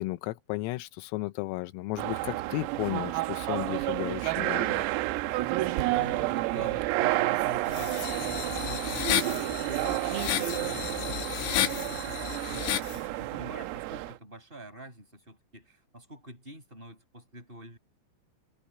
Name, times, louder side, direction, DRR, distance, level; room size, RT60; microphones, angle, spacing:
voice 1, 0.0-4.8, left 19 dB, 90° left, 3.6 m, -34 dB
British Museum vox sneeze f, 2.0-14.2, right 18 dB, 90° right, 3.8 m, -30 dB
Percussion, 5.8-10.6, right 10 dB, 70° right, 2.7 m, -47 dB
voice 2, 5.9-17.8, right 1 dB, 10° right, 6.4 m, -46 dB
sound 1, 7.7-13.0, left 12 dB, 70° left, 3.9 m, -32 dB
omnidirectional pair, 5.9 m